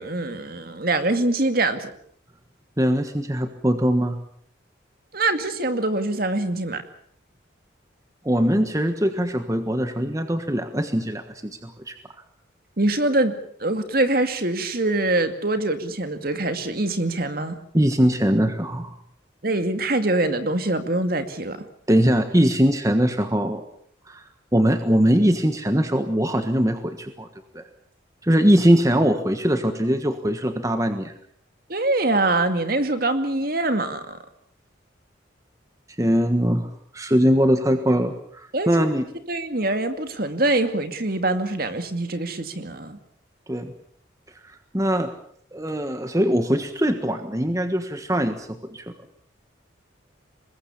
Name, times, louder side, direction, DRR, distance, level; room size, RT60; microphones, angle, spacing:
voice 1, 0.0-1.9 5.1-6.8 12.8-17.6 19.4-21.7 31.7-34.2 38.5-38.9 39.3-43.0, right 2 dB, 50° right, 8 dB, 2.3 m, -24 dB
voice 2, 2.8-4.2 8.2-11.9 17.7-18.9 21.9-23.6 24.1-24.2 24.5-27.3 27.5-27.6 28.2-31.1 36.0-39.0 43.5-43.7 44.7-45.1 45.5-48.9, equal, 15° right, 7 dB, 1.4 m, -21 dB
25.0 x 21.0 x 7.2 m, 0.63 s
head